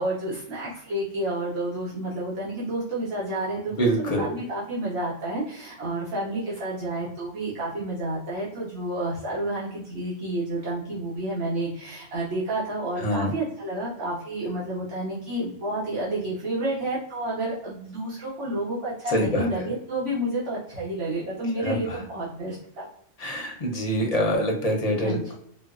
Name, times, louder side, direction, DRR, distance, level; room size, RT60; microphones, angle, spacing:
voice 1, 0.0-22.9 25.0-25.2, right 1 dB, 75° right, -8 dB, 1.2 m, -30 dB
voice 2, 3.7-4.3 13.0-13.3 19.1-19.7 21.6-22.0 23.2-25.3, equal, 40° left, 0 dB, 0.6 m, -25 dB
4.4 x 2.0 x 2.4 m, 0.70 s
omnidirectional pair, 1.2 m